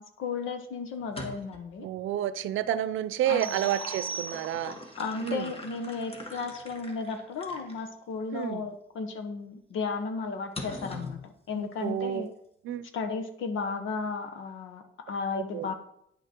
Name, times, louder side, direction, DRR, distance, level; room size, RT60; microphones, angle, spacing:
voice 1, 0.0-1.9 3.3-3.7 5.0-12.3 12.9-15.7, left 4 dB, 80° left, 8 dB, 1.3 m, -34 dB
sound 1, 1.0-1.7 3.0-7.8 8.4-8.5 10.6-11.2, left 2 dB, 30° left, 1.8 m, -42 dB
voice 2, 1.8-4.8 5.2-5.5 8.3-8.7 11.5-12.3 12.6-12.8 15.3-15.7, right 11 dB, 80° right, 15 dB, 0.6 m, -30 dB
sound 2, 3.4-4.9, right 5 dB, 25° right, 1.2 m, -39 dB
10.0 x 6.0 x 4.5 m, 0.77 s
cardioid pair, 90°, 20 cm